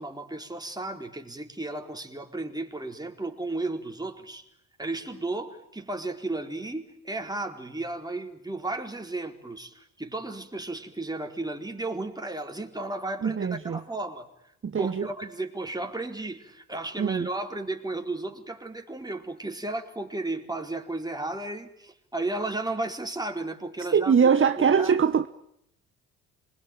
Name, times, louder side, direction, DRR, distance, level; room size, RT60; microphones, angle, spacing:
voice 1, 0.0-4.4 4.8-14.3 14.7-24.9, right 2 dB, 10° right, 4.5 m, -34 dB
voice 2, 13.2-13.8 14.6-15.1 17.0-17.3 23.9-25.3, right 6 dB, 30° right, 1.2 m, -22 dB
26.5 x 21.5 x 9.2 m
hypercardioid pair, 50°, 42 cm